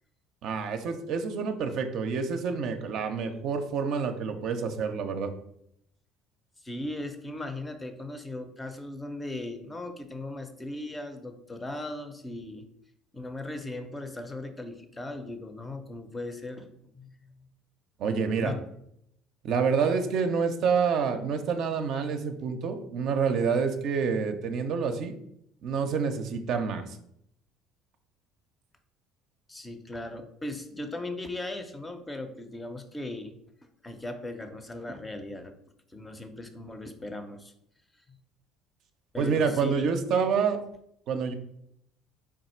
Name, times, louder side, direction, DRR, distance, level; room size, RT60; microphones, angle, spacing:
voice 1, 0.4-5.3 18.0-18.5 19.4-25.1 25.6-27.0 39.2-40.6 41.1-41.3, right 5 dB, 60° right, 6 dB, 0.4 m, -28 dB
voice 2, 6.6-12.7 13.1-16.7 16.9-17.1 18.4-18.6 29.5-33.3 33.8-35.6 35.9-37.5 39.1-40.0, left 2 dB, 20° left, 7 dB, 0.5 m, -38 dB
3.5 x 2.4 x 4.2 m, 0.75 s
supercardioid pair, 80°, 0 cm